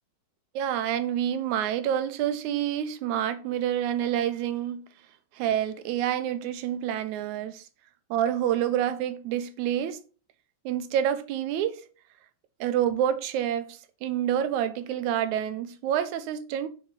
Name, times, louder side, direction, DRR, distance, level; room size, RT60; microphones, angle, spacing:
voice 1, 0.6-4.9 5.3-7.6 8.1-10.0 10.7-11.8 12.6-16.7, right 10 dB, 80° right, 2.0 m, -28 dB
7.2 x 3.9 x 5.1 m
omnidirectional pair, 3.4 m